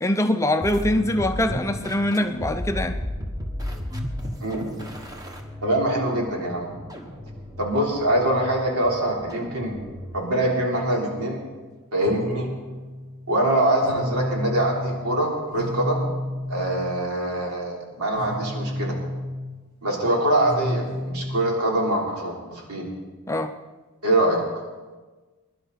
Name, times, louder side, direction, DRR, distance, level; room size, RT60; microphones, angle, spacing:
voice 1, 0.0-3.0 23.3-23.5, left 1 dB, 15° left, 7 dB, 0.5 m, -23 dB
sound 1, 0.6-10.3, left 1 dB, 15° right, 1.2 m, -34 dB
voice 2, 4.4-4.9 5.6-6.7 7.6-9.7 10.1-11.4 11.9-12.5 13.3-16.0 16.5-19.0 19.8-22.9 24.0-24.4, right 1 dB, 85° right, -2 dB, 3.5 m, -24 dB
sound 2, 10.2-11.7 12.0-13.4 13.6-17.0 18.1-19.5 20.4-21.4, equal, 55° right, 5.9 m, -32 dB
22.0 x 11.0 x 4.1 m, 1.3 s
head